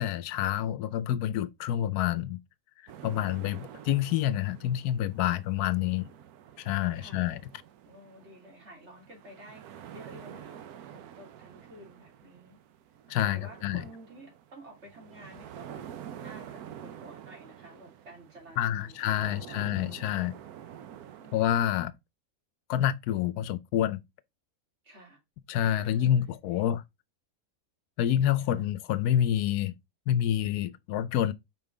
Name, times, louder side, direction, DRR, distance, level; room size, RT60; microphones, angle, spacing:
voice 1, 0.0-2.4 3.0-6.1 6.6-7.4 13.1-13.8 18.6-20.3 21.3-21.9 22.7-24.0 25.5-26.8 28.0-29.7 30.1-31.3, left 11 dB, 90° left, 1.1 m, -28 dB
sound 1, 2.9-21.4, right 10 dB, 80° right, 1.2 m, -48 dB
voice 2, 6.9-7.3 7.8-10.6 10.9-12.6 13.2-15.8 16.2-20.2 21.2-21.6 24.8-25.2 25.8-26.7 28.4-28.7, right 1 dB, 45° right, 3.2 m, -51 dB
5.4 x 4.7 x 3.8 m
omnidirectional pair, 1.6 m